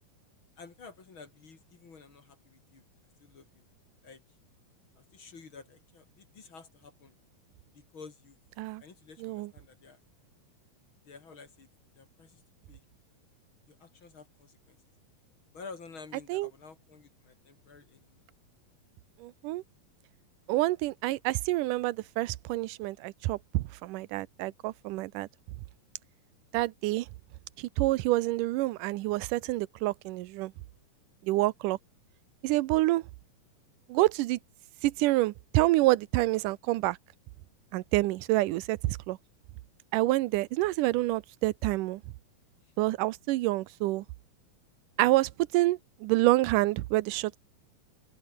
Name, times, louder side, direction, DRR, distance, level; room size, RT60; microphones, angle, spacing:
voice 1, 0.6-2.8 3.2-3.6 4.0-4.2 5.0-7.1 7.7-8.4 8.8-10.0 11.1-11.7 12.0-12.4 12.7-12.8 13.7-14.8 15.5-18.2, left 4 dB, 40° left, 2.8 m, -51 dB
voice 2, 19.2-19.6 20.5-25.3 26.5-27.1 27.6-30.5 31.2-31.8 32.4-33.0 33.9-34.4 34.8-37.0 37.7-39.2 39.9-42.0 42.8-44.1 45.0-47.4, right 18 dB, 80° right, 2.1 m, -27 dB
open air
omnidirectional pair, 4.1 m